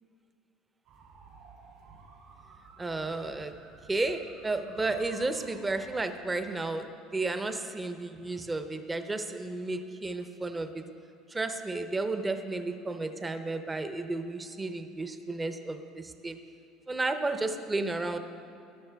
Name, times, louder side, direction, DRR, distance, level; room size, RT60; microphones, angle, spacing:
sound 1, 0.8-6.1, right 4 dB, 75° right, 2.4 m, -54 dB
voice 1, 2.8-3.5 3.9-10.8 11.3-16.4 16.9-18.2, right 2 dB, 15° right, 8 dB, 0.6 m, -32 dB
13.0 x 11.5 x 3.4 m, 2.7 s
cardioid pair, 130°, 0 cm